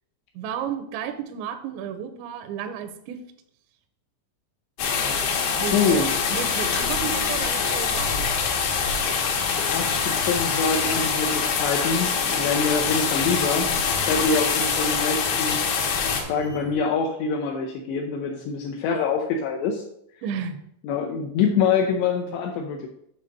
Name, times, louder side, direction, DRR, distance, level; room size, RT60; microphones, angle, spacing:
voice 1, 0.3-3.2 5.6-6.0 6.3-8.3 20.2-20.6, right 8 dB, 80° right, 7 dB, 2.6 m, -32 dB
sound 1, 4.8-16.2, left 6 dB, 70° left, 2.7 m, -24 dB
voice 2, 5.7-6.1 9.7-15.9 16.2-19.8 20.8-22.9, left 5 dB, 85° left, 2 dB, 2.4 m, -25 dB
sound 2, 7.8-16.7, left 1 dB, 30° left, 1.0 m, -42 dB
7.9 x 3.6 x 6.4 m, 0.73 s
omnidirectional pair, 5.7 m